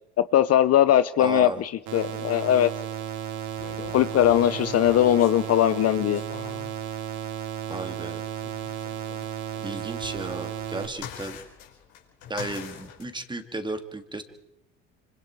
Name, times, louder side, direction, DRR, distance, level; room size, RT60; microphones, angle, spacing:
voice 1, 0.3-2.7 3.9-6.2, left 11 dB, 45° left, 14 dB, 0.8 m, -20 dB
voice 2, 1.2-1.6 7.7-8.2 9.6-11.4 12.3-14.2, right 2 dB, 15° right, 7 dB, 2.6 m, -34 dB
sound 1, 1.9-10.9, right 10 dB, 65° right, 3.1 m, -34 dB
sound 2, 3.6-6.7 8.4-13.0, left 8 dB, 80° left, 5.0 m, -43 dB
25.5 x 25.5 x 4.7 m, 0.81 s
supercardioid pair, 80°, 33 cm